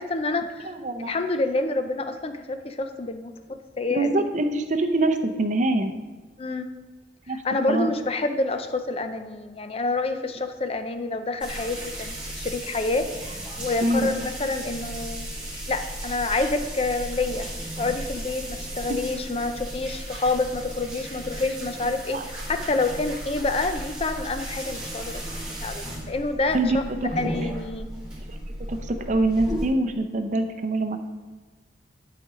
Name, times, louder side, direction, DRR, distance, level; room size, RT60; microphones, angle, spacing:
voice 1, 0.0-0.7 1.0-3.3 3.8-4.3 6.4-6.7 7.3-13.1 13.6-15.3 15.7-17.5 17.8-26.8 27.2-27.9, left 3 dB, 35° left, 8 dB, 0.6 m, -28 dB
voice 2, 0.6-1.1 3.9-5.9 7.3-7.4 7.7-7.9 13.8-14.1 22.1-22.2 26.5-27.1 28.7-31.0, right 2 dB, 45° right, 6 dB, 0.6 m, -24 dB
sound 1, 11.4-29.7, right 1 dB, 5° right, 2.5 m, -35 dB
11.5 x 5.2 x 3.8 m, 1.4 s
head